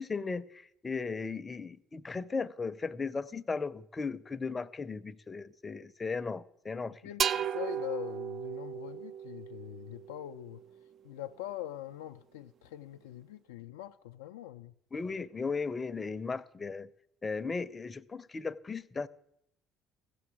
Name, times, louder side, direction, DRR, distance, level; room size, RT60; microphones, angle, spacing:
voice 1, 0.0-7.0 14.9-16.9 17.2-19.1, left 4 dB, 25° left, 0.6 m, -36 dB
voice 2, 7.0-10.6 11.0-14.7, left 13 dB, 75° left, 0.4 m, -43 dB
sound 1, 7.2-10.8, right 8 dB, 50° right, 0.4 m, -35 dB
16.0 x 7.0 x 7.4 m
hypercardioid pair, 55°, 0 cm